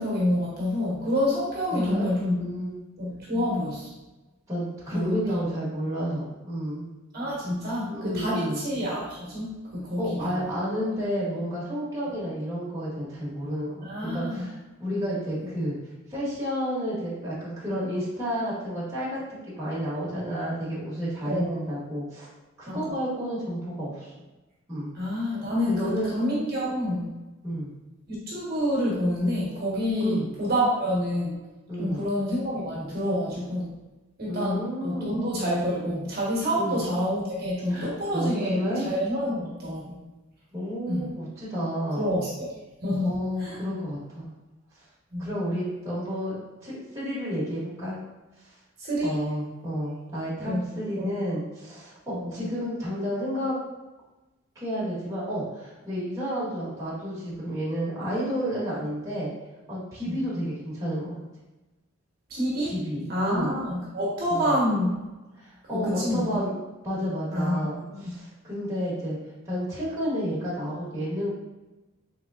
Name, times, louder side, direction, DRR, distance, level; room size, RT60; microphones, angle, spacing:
voice 1, 0.0-2.4 3.0-3.9 4.9-5.5 7.1-10.4 13.8-14.5 21.2-21.6 22.8-22.9 24.9-27.1 28.1-31.4 31.8-33.7 34.2-39.9 40.9-41.1 41.9-42.5 42.8-43.6 45.1-45.3 48.8-49.2 50.4-51.1 52.1-52.4 60.1-60.2 62.3-62.8 63.1-65.0 65.7-66.4 67.3-68.2, equal, 45° right, -6 dB, 1.0 m, -28 dB
voice 2, 1.7-2.8 4.5-6.9 7.9-8.6 10.0-15.7 16.1-19.2 19.6-22.3 22.6-24.1 24.7-24.9 25.7-26.1 27.4-27.7 30.0-30.3 31.7-32.0 34.3-35.1 36.6-36.8 37.7-38.9 40.5-42.2 43.0-44.3 45.2-48.0 49.0-53.6 54.5-59.3 59.7-61.2 62.6-63.6 64.3-64.6 65.4-66.5 66.8-69.2 69.4-71.3, equal, 15° right, -8 dB, 1.1 m, -31 dB
3.6 x 3.2 x 2.3 m, 1.1 s
head